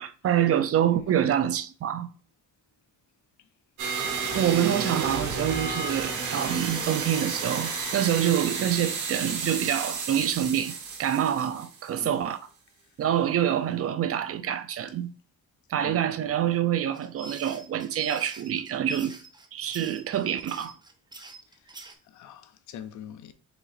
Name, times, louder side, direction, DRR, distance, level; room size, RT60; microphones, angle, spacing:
voice 1, 0.0-2.1 4.3-10.7 11.0-12.4 13.0-15.1 15.7-19.2 19.5-20.7, right 10 dB, 50° right, 0.5 m, -26 dB
sound 1, 3.8-12.1, right 5 dB, 75° right, 1.3 m, -31 dB
sound 2, 16.9-21.9, right 3 dB, 15° right, 0.7 m, -45 dB
voice 2, 22.1-23.3, left 9 dB, 75° left, 0.6 m, -44 dB
5.0 x 4.0 x 2.5 m
cardioid pair, 90°, 30 cm